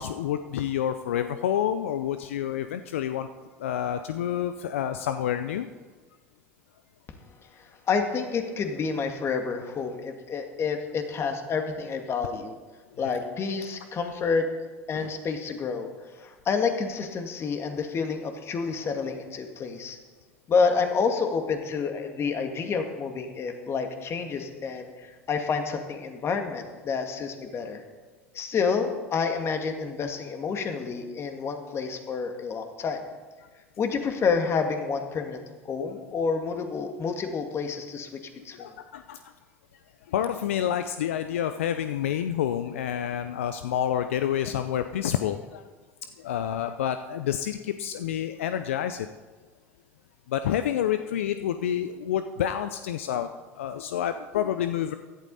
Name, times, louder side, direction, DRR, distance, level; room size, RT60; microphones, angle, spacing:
voice 1, 0.0-3.3 3.6-5.7 13.0-13.2 14.9-15.1 38.6-39.2 40.1-45.6 46.2-49.1 50.3-53.3 53.6-54.9, left 10 dB, 75° left, 10 dB, 0.5 m, -28 dB
voice 2, 7.4-12.6 13.0-14.5 14.9-15.9 16.2-20.0 20.5-27.8 28.3-33.1 33.8-38.1 38.4-38.8, left 5 dB, 40° left, 5 dB, 2.0 m, -29 dB
16.5 x 11.5 x 4.1 m, 1.3 s
hypercardioid pair, 75°, 7 cm